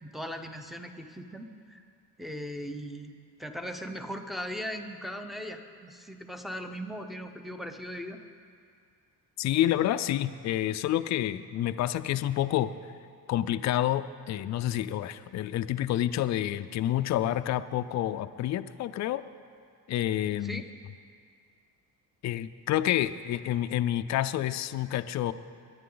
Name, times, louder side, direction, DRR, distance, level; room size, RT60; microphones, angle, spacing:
voice 1, 0.0-1.8 2.2-3.1 3.4-8.2 20.4-20.7, equal, ahead, 6 dB, 0.6 m, -38 dB
voice 2, 9.4-12.7 13.3-19.2 19.9-20.6 22.2-25.3, left 12 dB, 45° left, 12 dB, 0.4 m, -28 dB
23.0 x 10.0 x 3.9 m, 2.2 s
cardioid pair, 155°, 38 cm